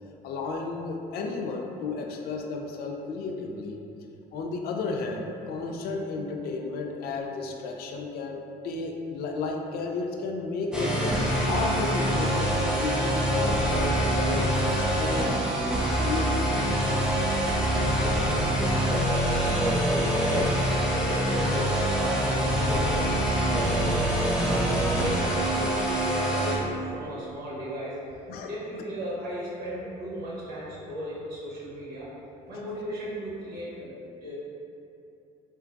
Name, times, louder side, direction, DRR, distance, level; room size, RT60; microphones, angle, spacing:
voice 1, 0.2-3.8 4.3-15.5 16.0-17.0 24.3-24.4 28.3-28.5, left 3 dB, 70° left, 2 dB, 0.4 m, -33 dB
sound 1, 10.7-26.6, right 1 dB, 5° right, 0.6 m, -25 dB
voice 2, 18.6-23.9 24.4-28.0 28.4-32.1 32.5-34.3, equal, 65° right, -8 dB, 1.3 m, -36 dB
4.4 x 2.2 x 2.5 m, 2.7 s
cardioid pair, 110°, 17 cm